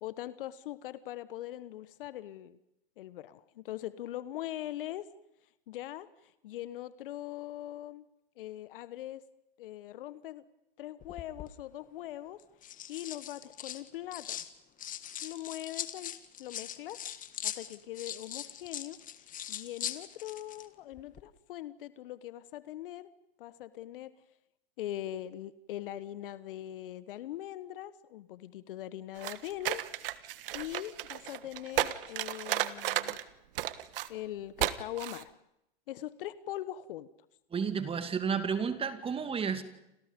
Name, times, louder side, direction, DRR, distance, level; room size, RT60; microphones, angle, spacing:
voice 1, 0.0-2.6 3.0-5.1 5.7-8.1 8.4-9.2 9.6-10.4 10.8-14.4 15.2-16.1 16.4-17.0 17.4-23.1 23.4-24.1 24.8-29.8 30.5-33.2 34.1-35.3 35.9-37.1, left 13 dB, 65° left, 15 dB, 1.3 m, -41 dB
sound 1, 11.0-11.5 12.4-14.5 14.8-20.7 20.9-21.2, left 10 dB, 25° left, 1.7 m, -41 dB
sound 2, 29.2-33.2 33.6-34.1 34.6-34.7 35.0-35.2, right 14 dB, 65° right, 1.5 m, -33 dB
voice 2, 37.5-39.6, right 6 dB, 20° right, 10 dB, 2.3 m, -31 dB
30.0 x 27.0 x 5.3 m, 0.85 s
hypercardioid pair, 110°, 29 cm